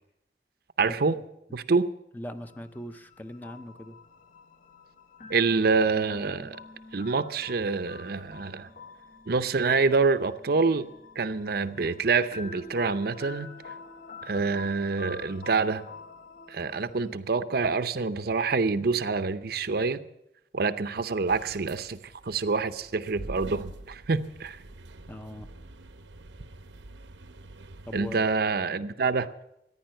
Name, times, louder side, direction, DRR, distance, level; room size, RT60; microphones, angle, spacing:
voice 1, 0.8-1.2 1.5-1.9 5.3-6.6 6.9-8.7 9.3-10.9 11.2-13.5 14.2-15.8 16.5-20.0 20.5-22.0 22.2-24.6 27.9-29.3, right 4 dB, 55° right, 0.6 m, -26 dB
voice 2, 2.1-4.0 25.1-25.5 27.9-28.3, left 1 dB, 10° left, 0.6 m, -40 dB
sound 1, 2.4-17.1, left 4 dB, 45° left, 0.9 m, -47 dB
sound 2, 21.3-28.2, right 2 dB, 85° right, 0.9 m, -46 dB
15.0 x 9.9 x 7.7 m
head